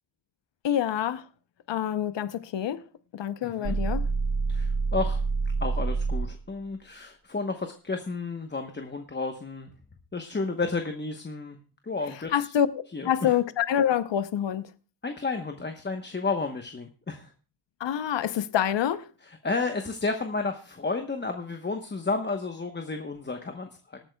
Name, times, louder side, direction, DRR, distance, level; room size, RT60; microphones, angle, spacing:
voice 1, 0.6-1.2 1.7-2.8 3.1-4.1 12.3-12.7 13.1-14.7 17.8-19.0, left 10 dB, 85° left, 0.8 m, -26 dB
voice 2, 3.4-3.8 4.5-5.2 5.6-9.7 10.1-11.6 11.8-12.5 12.9-13.4 15.0-17.3 19.2-24.1, left 3 dB, 25° left, 1.0 m, -32 dB
sound 1, 3.6-6.4, right 4 dB, 55° right, 3.9 m, -27 dB
26.0 x 8.8 x 2.3 m
wide cardioid pair, 120°, 42 cm